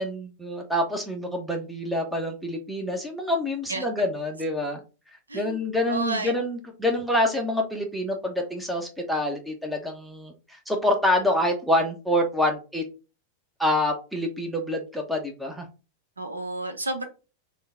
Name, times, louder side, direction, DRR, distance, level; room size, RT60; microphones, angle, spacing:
voice 1, 0.0-4.8 5.3-12.8 13.6-15.7, left 1 dB, ahead, 2 dB, 0.9 m, -26 dB
voice 2, 5.9-6.3 16.2-17.1, right 2 dB, 80° right, 7 dB, 0.7 m, -30 dB
3.7 x 2.3 x 3.7 m, 0.32 s
figure-of-eight pair, 90°, 0 cm